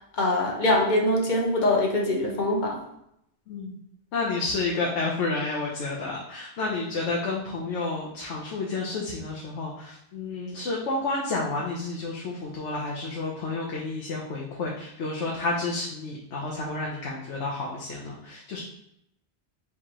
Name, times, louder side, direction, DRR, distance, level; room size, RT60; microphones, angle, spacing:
voice 1, 0.2-2.8, left 1 dB, 45° left, -1 dB, 1.1 m, -23 dB
voice 2, 4.1-18.6, left 3 dB, 85° left, -2 dB, 1.1 m, -30 dB
4.6 x 3.7 x 3.0 m, 0.77 s
omnidirectional pair, 1.2 m